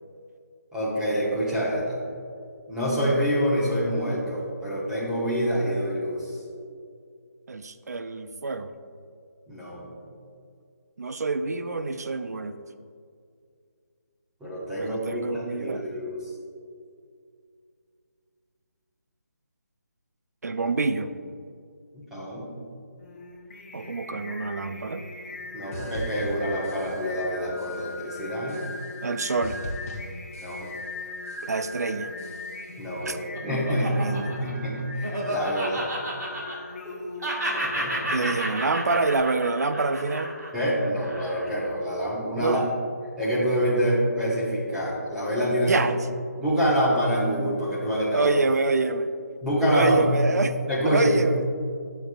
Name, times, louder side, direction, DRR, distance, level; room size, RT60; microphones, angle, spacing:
voice 1, 0.7-2.0 2.7-6.4 9.5-9.9 14.4-16.2 22.1-22.5 25.5-28.6 30.4-30.7 32.8-33.2 33.4-35.9 37.5-38.2 40.5-42.6 43.2-45.8 46.4-48.3 49.4-50.1 50.7-51.2, equal, 5° right, -9 dB, 1.3 m, -26 dB
voice 2, 7.5-8.7 11.0-12.6 14.8-15.8 20.4-21.1 23.7-25.0 29.0-29.6 31.4-32.1 33.0-33.2 33.7-34.4 38.1-40.3 42.3-42.6 45.7-46.0 48.1-49.1 49.7-50.5 50.8-51.5, right 3 dB, 70° right, 10 dB, 0.5 m, -26 dB
Singing, 23.0-39.2, left 2 dB, 45° left, 1.5 m, -40 dB
sound 1, 25.7-27.3 27.6-28.1 28.5-29.1 29.4-31.0 31.3-31.8 32.2-32.8, left 1 dB, 60° left, 1.5 m, -41 dB
Laughter, 32.7-36.9 37.2-41.7, right 1 dB, 85° right, 1.7 m, -32 dB
10.5 x 6.7 x 2.5 m, 2.3 s
figure-of-eight pair, 160°, 9 cm